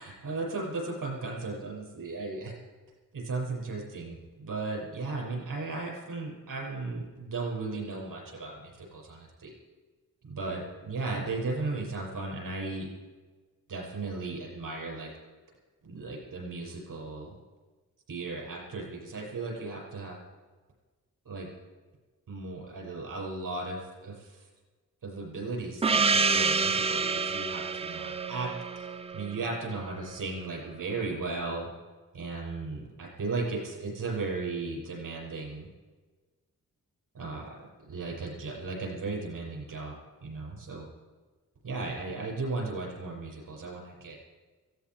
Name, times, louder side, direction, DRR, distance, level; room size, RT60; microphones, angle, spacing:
voice 1, 0.0-2.5 3.1-9.5 10.2-12.9 13.7-15.1 15.8-17.3 18.1-20.2 21.3-21.5 22.3-24.1 25.0-28.5 28.8-28.9 29.1-31.7 32.1-35.7 37.1-37.6 37.9-39.9 40.2-40.9 41.6-44.2, right 3 dB, 75° right, -1 dB, 6.4 m, -36 dB
Gong, 25.8-30.2, right 4 dB, 20° right, 0.4 m, -28 dB
17.0 x 16.0 x 4.7 m, 1.3 s
wide cardioid pair, 140°, 34 cm